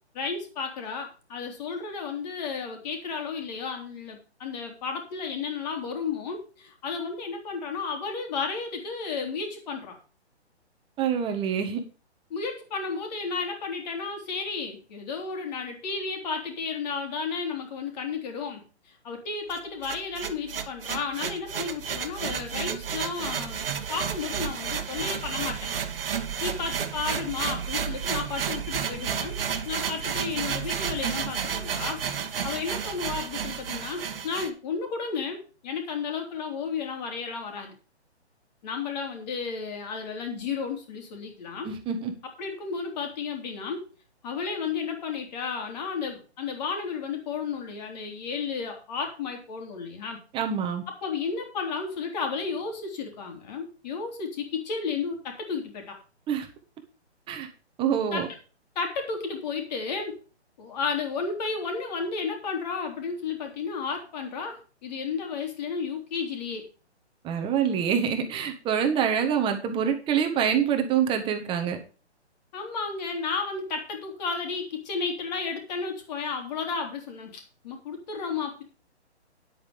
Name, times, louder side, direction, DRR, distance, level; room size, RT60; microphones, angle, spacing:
voice 1, 0.1-10.0 12.3-23.6 23.9-25.7 26.4-29.4 29.6-32.0 32.4-35.4 35.6-37.8 38.6-41.7 42.4-43.8 44.2-50.2 50.9-56.0 58.1-58.3 58.8-60.2 60.6-66.7 72.5-78.6, left 5 dB, 40° left, 3 dB, 3.6 m, -33 dB
voice 2, 11.0-11.8 41.6-42.1 50.3-50.8 56.3-56.5 57.3-57.5 57.8-58.3 67.2-71.8, right 8 dB, 15° right, 6 dB, 1.5 m, -26 dB
sound 1, 19.5-34.5, right 7 dB, 55° right, 1.7 m, -31 dB
10.0 x 8.7 x 5.2 m, 0.35 s
figure-of-eight pair, 140°, 34 cm